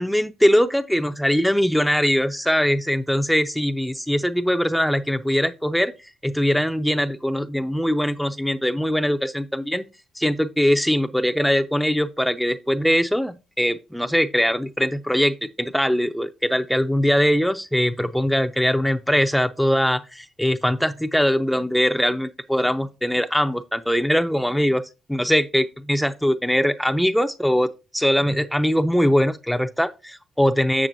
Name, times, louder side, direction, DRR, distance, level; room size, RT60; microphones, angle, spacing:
voice 1, 0.0-5.9 6.2-9.8 10.2-24.8 25.1-30.9, equal, ahead, 0.5 m, -21 dB
7.5 x 6.6 x 2.6 m
supercardioid pair, 70°, 0 cm